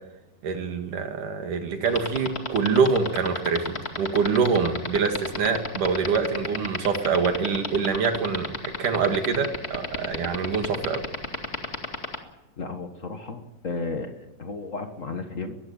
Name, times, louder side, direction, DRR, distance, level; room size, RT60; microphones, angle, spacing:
voice 1, 0.4-11.0, right 5 dB, 70° right, 6 dB, 3.6 m, -25 dB
sound 1, 1.8-12.2, left 3 dB, 25° left, 1.8 m, -29 dB
voice 2, 12.6-15.5, left 3 dB, 50° left, 7 dB, 0.9 m, -34 dB
21.5 x 15.5 x 9.0 m, 0.98 s
omnidirectional pair, 3.8 m